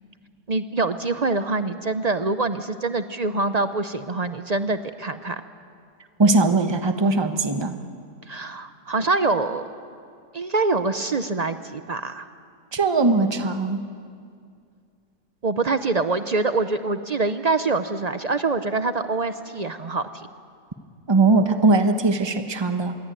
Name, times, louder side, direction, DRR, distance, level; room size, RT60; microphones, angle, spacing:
voice 1, 0.5-5.4 8.3-9.6 10.3-12.3 15.4-20.3, right 3 dB, 50° right, 10 dB, 0.4 m, -25 dB
voice 2, 6.2-7.8 12.7-13.8 21.1-23.0, right 3 dB, 20° right, 7 dB, 1.0 m, -20 dB
26.5 x 22.0 x 9.1 m, 2.3 s
omnidirectional pair, 1.9 m